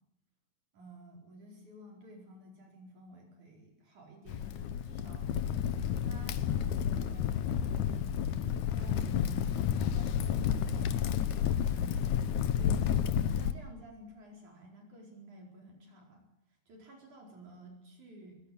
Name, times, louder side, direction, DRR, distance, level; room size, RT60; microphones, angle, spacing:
voice 1, 0.7-5.3 6.0-8.2 8.7-9.5 9.9-12.9 13.4-16.2 16.7-18.4, right 1 dB, 55° right, 0 dB, 5.9 m, -52 dB
Crackle, 4.3-13.5, left 9 dB, 65° left, 2.1 m, -31 dB
22.5 x 17.0 x 8.7 m, 0.80 s
omnidirectional pair, 4.2 m